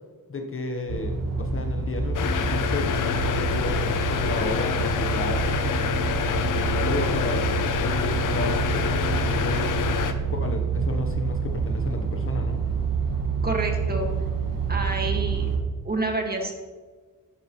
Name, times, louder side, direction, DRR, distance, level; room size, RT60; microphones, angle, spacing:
voice 1, 0.3-5.5 6.2-9.7 10.3-12.6, left 3 dB, 40° left, 4 dB, 1.2 m, -32 dB
sound 1, 0.9-15.6, right 5 dB, 80° right, 1.7 m, -27 dB
sound 2, 2.1-10.1, left 8 dB, 70° left, 0.8 m, -27 dB
voice 2, 13.4-14.1 14.7-15.5 15.8-16.5, right 2 dB, 30° right, 2 dB, 2.0 m, -28 dB
11.5 x 9.6 x 3.2 m, 1.4 s
cardioid pair, 95°, 32 cm